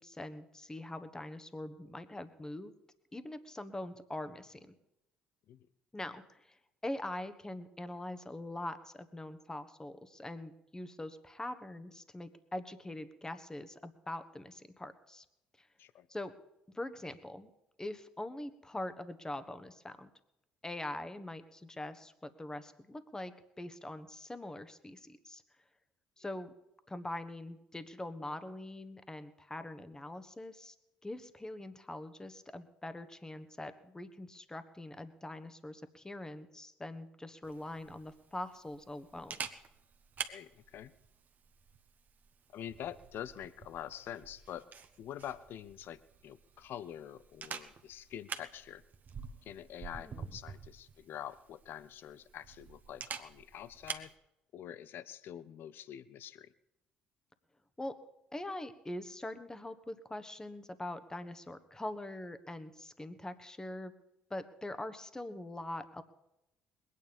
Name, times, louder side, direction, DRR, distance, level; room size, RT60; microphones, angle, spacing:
voice 1, 0.0-2.7 3.1-4.7 5.9-6.6 6.8-15.2 15.6-15.7 16.1-16.3 16.7-17.5 17.8-20.1 20.6-25.4 26.2-26.5 26.9-30.7 31.0-39.3 50.0-50.3 57.8-57.9 58.3-63.9 64.3-66.0, left 1 dB, 15° left, 11 dB, 1.4 m, -43 dB
Camera, 37.4-54.1, right 6 dB, 45° right, 1.3 m, -48 dB
voice 2, 40.3-40.9 42.5-44.6 45.0-48.8 49.4-54.1 54.5-56.5, left 10 dB, 60° left, 17 dB, 0.7 m, -46 dB
21.0 x 9.6 x 5.4 m, 0.88 s
hypercardioid pair, 60°, 4 cm